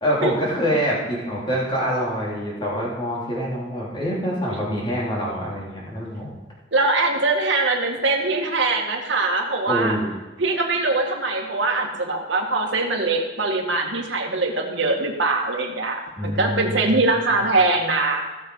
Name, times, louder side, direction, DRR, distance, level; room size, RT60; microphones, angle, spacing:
voice 1, 0.0-6.3 9.7-10.1 16.2-17.0, equal, 25° left, -5 dB, 3.0 m, -25 dB
voice 2, 6.7-10.0 10.4-18.2, right 3 dB, 80° right, 1 dB, 1.9 m, -22 dB
16.5 x 6.9 x 4.7 m, 1.1 s
head